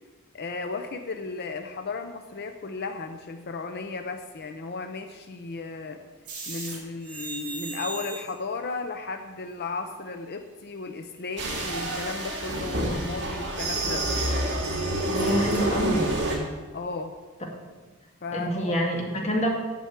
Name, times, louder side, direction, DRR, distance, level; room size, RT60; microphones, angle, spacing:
voice 1, 0.3-6.0 6.5-14.0 16.7-17.1 18.2-18.7, left 3 dB, 50° left, 6 dB, 0.6 m, -35 dB
sound 1, 6.3-6.8 7.0-8.3 13.6-15.6, right 4 dB, 35° right, 3.1 m, -35 dB
sound 2, 11.4-16.4, right 1 dB, 55° right, 2.2 m, -28 dB
voice 2, 15.1-16.1 18.3-19.5, equal, 30° left, 0 dB, 1.9 m, -26 dB
7.6 x 7.0 x 8.1 m, 1.3 s
head